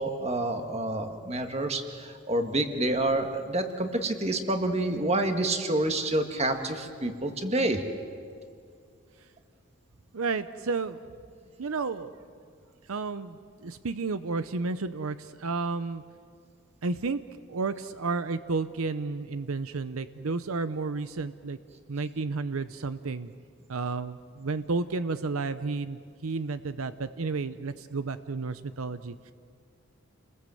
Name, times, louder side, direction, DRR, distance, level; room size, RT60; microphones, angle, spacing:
voice 1, 0.0-7.8, right 1 dB, 30° right, 6 dB, 1.7 m, -28 dB
voice 2, 10.1-11.0 11.6-12.1 12.9-16.0 16.8-17.2 17.5-21.6 21.9-23.3 23.7-29.3, right 4 dB, 80° right, 12 dB, 0.7 m, -32 dB
30.0 x 20.5 x 7.8 m, 2.3 s
head